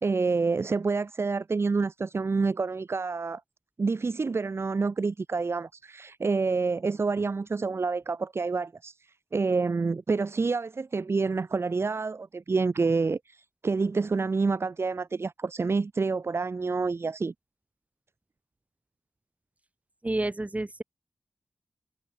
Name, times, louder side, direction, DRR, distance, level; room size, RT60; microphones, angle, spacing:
voice 1, 0.0-3.4 3.8-17.3, right 4 dB, 50° right, 0.8 m, -28 dB
voice 2, 20.0-20.8, right 2 dB, 25° right, 4.8 m, -29 dB
cardioid pair, 45°, 5 cm